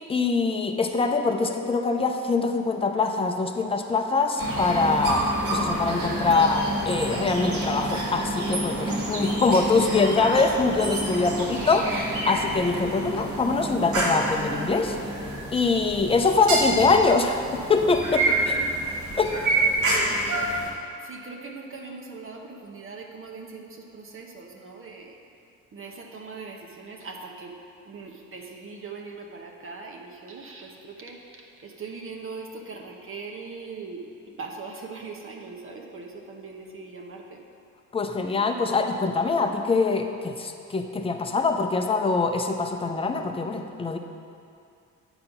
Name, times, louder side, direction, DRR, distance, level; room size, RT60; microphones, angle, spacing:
voice 1, 0.0-15.0 15.5-18.5 19.2-19.4 19.6-20.0 37.9-44.0, left 4 dB, 20° left, 5 dB, 0.6 m, -24 dB
sound 1, 4.4-20.7, right 1 dB, 70° right, 1.9 m, -28 dB
voice 2, 18.2-18.9 19.8-20.5 21.0-25.2 25.7-27.6 27.8-37.4, right 4 dB, 45° right, 1 dB, 0.9 m, -40 dB
8.6 x 4.0 x 5.9 m, 2.5 s
cardioid pair, 90°, 30 cm